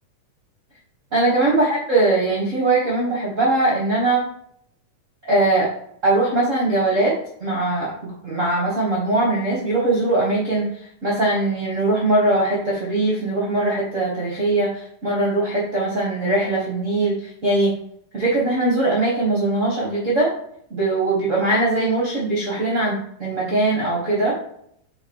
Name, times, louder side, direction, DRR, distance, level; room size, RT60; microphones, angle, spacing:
voice 1, 1.1-4.3 5.2-5.7 6.0-10.6 11.0-17.7 18.1-20.3 20.7-24.4, right 2 dB, 45° right, -5 dB, 1.0 m, -21 dB
6.8 x 3.6 x 4.7 m, 0.70 s
omnidirectional pair, 3.7 m